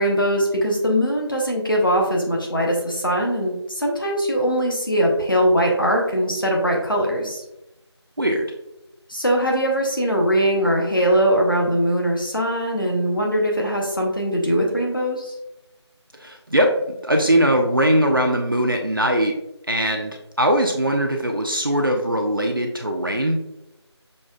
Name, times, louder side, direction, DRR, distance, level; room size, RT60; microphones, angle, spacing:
voice 1, 0.0-7.4 9.1-15.3, equal, 50° left, 0 dB, 0.7 m, -21 dB
voice 2, 16.1-19.4 19.7-23.4, equal, 50° right, 3 dB, 0.4 m, -21 dB
6.1 x 2.3 x 2.3 m, 0.88 s
figure-of-eight pair, 175°, 15 cm